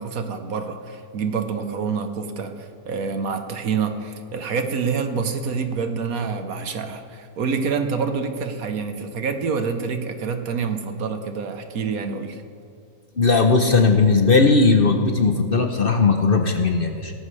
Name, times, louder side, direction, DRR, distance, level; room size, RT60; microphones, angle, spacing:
voice 1, 0.0-12.4, right 5 dB, 70° right, 7 dB, 1.5 m, -27 dB
voice 2, 13.2-17.1, left 4 dB, 45° left, 5 dB, 0.9 m, -17 dB
17.5 x 14.5 x 3.3 m, 2.5 s
omnidirectional pair, 1.6 m